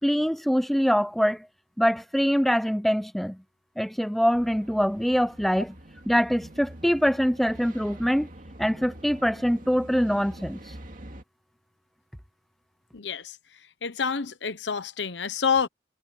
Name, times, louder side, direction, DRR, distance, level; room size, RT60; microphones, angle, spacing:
voice 1, 0.0-1.5 1.8-3.4 3.8-5.7 6.1-8.3 8.6-10.6, equal, ahead, 0.6 m, -24 dB
sound 1, 4.3-11.2, right 1 dB, 45° right, 2.4 m, -45 dB
voice 2, 12.9-13.4 13.8-15.7, left 6 dB, 75° left, 0.9 m, -27 dB
head